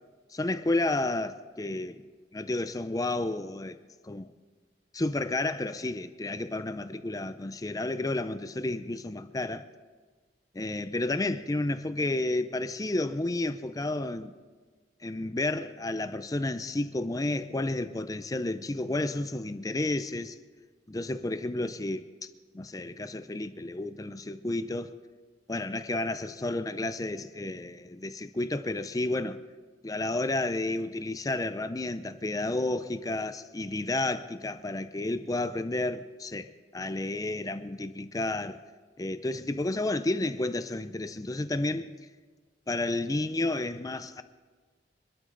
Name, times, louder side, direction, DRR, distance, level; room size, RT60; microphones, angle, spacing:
voice 1, 0.3-2.0 2.3-3.8 4.0-4.3 4.9-9.6 10.5-14.3 15.0-20.3 20.9-22.3 22.5-24.9 25.5-29.4 29.8-38.6 39.0-41.9 42.7-44.2, left 2 dB, 20° left, 0.5 m, -31 dB
24.0 x 12.5 x 3.9 m
head